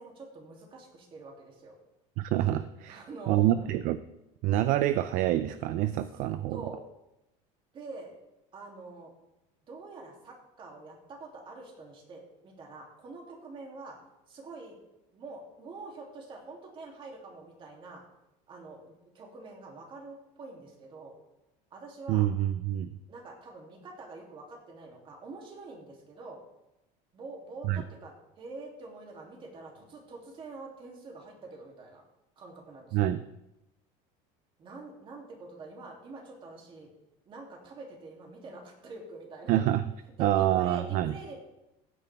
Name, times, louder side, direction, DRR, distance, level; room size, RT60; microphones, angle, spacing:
voice 1, 0.0-1.7 2.9-3.5 6.5-6.8 7.7-8.1 8.5-9.1 9.7-14.0 14.3-14.8 15.1-18.0 18.5-21.1 21.7-22.3 23.1-26.4 27.1-32.0 32.4-33.0 34.6-36.9 37.3-39.6 40.2-41.4, right 3 dB, 30° right, 0 dB, 2.8 m, -46 dB
voice 2, 2.2-4.0 4.4-6.6 22.1-22.9 27.6-27.8 32.9-33.2 39.5-39.8 40.2-41.1, right 13 dB, 55° right, 13 dB, 0.5 m, -27 dB
15.5 x 9.1 x 3.5 m, 0.91 s
cardioid pair, 140°, 16 cm